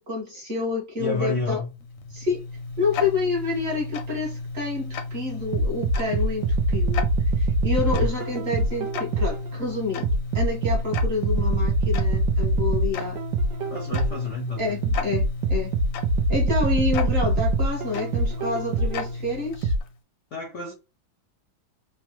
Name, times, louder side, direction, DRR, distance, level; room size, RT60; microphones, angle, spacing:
voice 1, 0.1-1.6 2.1-2.4 2.8-7.1 7.4-10.1 10.3-13.2 14.6-15.7 16.3-19.7, left 3 dB, 45° right, 0.8 m, -28 dB
voice 2, 1.0-1.7 7.8-8.2 13.7-14.8 20.3-20.7, left 3 dB, 65° left, 0.7 m, -30 dB
Tick-tock, 1.7-20.0, left 3 dB, 80° left, 1.4 m, -34 dB
sound 1, 5.5-9.5 10.0-14.3 14.8-19.1 19.6-19.8, right 2 dB, 75° right, 1.1 m, -23 dB
3.4 x 2.0 x 2.9 m
omnidirectional pair, 2.2 m